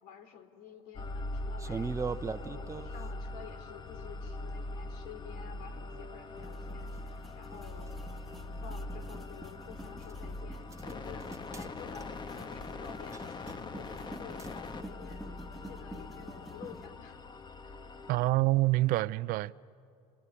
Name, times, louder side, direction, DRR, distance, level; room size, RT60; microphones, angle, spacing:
voice 1, 0.0-1.9 2.3-7.9 8.2-17.2 17.6-17.8, left 7 dB, 65° left, 2.9 m, -51 dB
sound 1, 0.9-18.3, left 2 dB, 25° left, 1.2 m, -42 dB
sound 2, 1.6-3.1 6.9-7.0 7.9-8.0 10.0-10.2 10.7-10.9 11.2-11.7 11.9-12.2 13.1-13.6 14.4-14.6, right 5 dB, 20° right, 0.9 m, -38 dB
sound 3, 6.4-16.9, right 1 dB, ahead, 1.7 m, -49 dB
voice 2, 18.1-19.6, right 19 dB, 60° right, 0.5 m, -27 dB
28.5 x 21.5 x 8.6 m
supercardioid pair, 100°, 16 cm